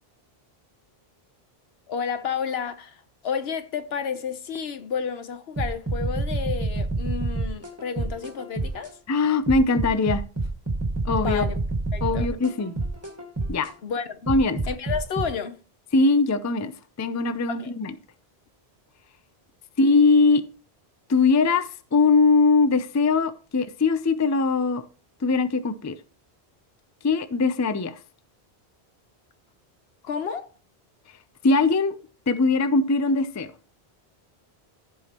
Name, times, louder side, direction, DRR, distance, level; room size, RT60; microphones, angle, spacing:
voice 1, 1.9-8.9 11.2-11.6 11.9-12.3 13.8-14.2 14.7-15.6 17.5-17.7 30.0-30.5, left 6 dB, 75° left, 1.1 m, -31 dB
sound 1, 5.6-8.9 9.5-13.7 14.3-15.2, right 2 dB, 15° right, 1.7 m, -28 dB
voice 2, 9.1-10.2 11.0-11.4 12.0-12.7 13.5-13.7 14.3-14.6 15.9-16.7 17.0-17.9 19.8-20.4 21.1-24.8 25.2-26.0 27.0-28.0 31.4-32.0 32.3-33.5, left 3 dB, 25° left, 0.4 m, -21 dB
15.0 x 5.2 x 2.9 m
omnidirectional pair, 1.1 m